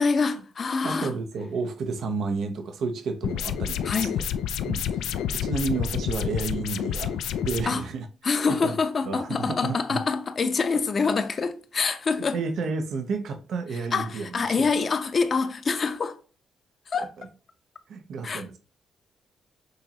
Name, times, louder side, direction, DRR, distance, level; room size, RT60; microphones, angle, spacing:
voice 1, 0.0-1.1 3.8-4.2 7.6-7.8 8.2-12.4 13.9-16.2 16.9-17.1 18.2-18.6, left 4 dB, 50° left, 0.7 m, -26 dB
voice 2, 0.8-4.2 4.7-8.1 8.6-8.8 9.1-10.0 12.2-14.4 17.2-17.3 17.9-18.6, right 4 dB, 70° right, 0.7 m, -31 dB
sound 1, 3.2-7.6, left 9 dB, 85° left, 0.3 m, -29 dB
6.4 x 2.9 x 2.8 m
cardioid pair, 70°, 0 cm